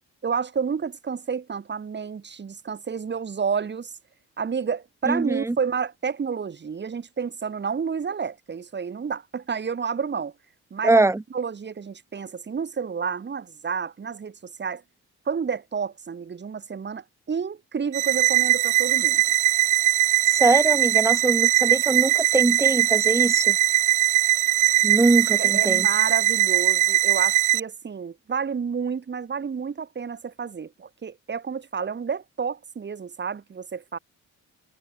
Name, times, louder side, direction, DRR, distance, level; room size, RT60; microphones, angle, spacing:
voice 1, 0.2-3.9 4.4-10.3 10.7-11.0 11.3-14.8 15.3-19.2 25.4-34.0, right 6 dB, 35° right, 2.3 m, -30 dB
voice 2, 5.1-5.6 10.8-11.2 20.3-23.6 24.8-25.9, right 2 dB, 10° right, 0.8 m, -22 dB
sound 1, 17.9-27.6, right 15 dB, 80° right, 1.1 m, -20 dB
cardioid pair, 90°, 30 cm